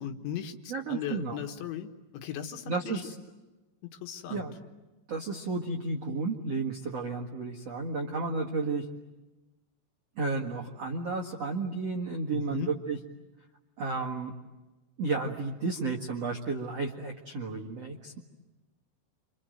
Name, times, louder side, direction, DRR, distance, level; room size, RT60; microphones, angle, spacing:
voice 1, 0.0-3.0 3.9-4.5 12.3-12.7, left 9 dB, 70° left, 5 dB, 3.5 m, -38 dB
voice 2, 0.7-1.4 2.7-3.1 4.3-4.6 5.1-8.8 10.2-13.0 13.8-14.3 15.0-18.2, right 3 dB, 70° right, 0 dB, 1.5 m, -32 dB
29.0 x 26.0 x 7.8 m, 1.1 s
omnidirectional pair, 5.8 m